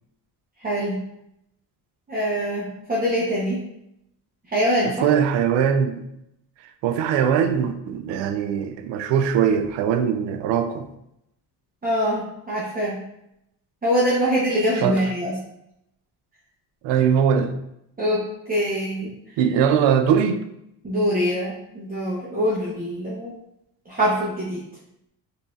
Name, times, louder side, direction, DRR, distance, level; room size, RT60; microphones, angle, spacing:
voice 1, 0.6-1.0 2.1-3.6 4.5-5.1 11.8-13.0 13.8-15.3 18.0-19.1 20.8-23.3 23.9-24.6, equal, 20° right, -7 dB, 0.9 m, -24 dB
voice 2, 5.0-6.0 6.8-10.9 14.7-15.0 16.8-17.5 19.4-20.4, right 8 dB, 75° right, 9 dB, 0.5 m, -21 dB
3.8 x 2.8 x 2.5 m, 0.81 s
supercardioid pair, 75°, 44 cm